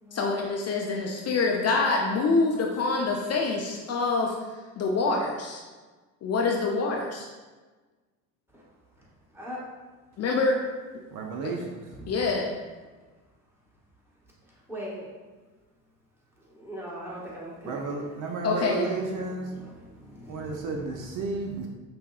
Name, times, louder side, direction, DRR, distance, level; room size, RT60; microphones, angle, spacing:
voice 1, 0.1-5.6 6.2-7.3 10.2-10.6 11.4-11.5 12.1-12.6 18.4-18.8, left 3 dB, 40° left, 0 dB, 0.5 m, -26 dB
voice 2, 9.3-9.6 12.0-12.1 14.7-15.1 16.5-18.2 18.5-18.6 19.2-20.9, equal, 5° right, -6 dB, 1.3 m, -40 dB
voice 3, 11.1-11.8 17.7-19.5 20.3-21.7, right 4 dB, 50° right, 1 dB, 0.6 m, -32 dB
5.5 x 2.1 x 2.3 m, 1.3 s
hypercardioid pair, 70°, 39 cm